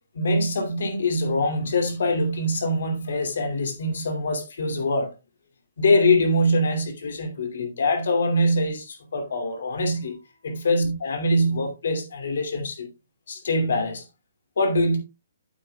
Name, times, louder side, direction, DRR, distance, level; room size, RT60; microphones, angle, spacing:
voice 1, 0.1-5.1 5.8-12.9 13.3-14.0 14.6-15.0, left 1 dB, 70° left, 2.4 m, -24 dB
8.5 x 8.4 x 2.3 m
hypercardioid pair, 170°, 0 cm